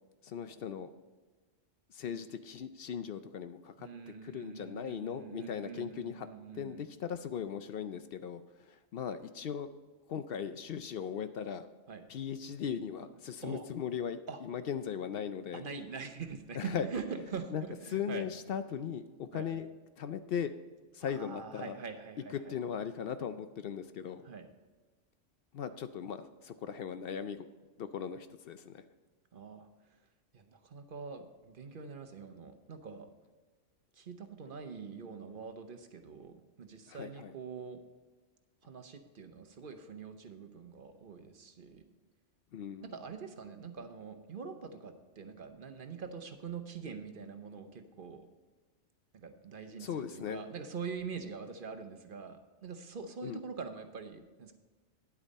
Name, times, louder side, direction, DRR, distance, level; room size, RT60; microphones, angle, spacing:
voice 1, 0.2-0.9 1.9-3.9 4.2-6.3 6.5-9.7 10.1-11.7 12.1-15.6 16.5-16.9 17.5-17.6 17.9-19.7 20.0-20.5 20.9-21.8 22.5-24.3 25.5-27.5 27.8-28.8 36.9-37.3 42.5-42.9 49.8-50.4 53.2-53.4, left 8 dB, 60° left, 11 dB, 0.6 m, -38 dB
voice 2, 3.8-6.9 11.9-12.0 13.4-13.6 14.3-14.4 15.5-18.3 19.3-19.5 21.0-22.6 24.2-24.5 29.3-30.0 30.3-33.1 33.9-37.8 38.6-41.8 42.8-48.3 49.1-54.5, right 5 dB, 50° right, 7 dB, 0.9 m, -44 dB
9.8 x 8.7 x 4.1 m, 1.3 s
omnidirectional pair, 1.3 m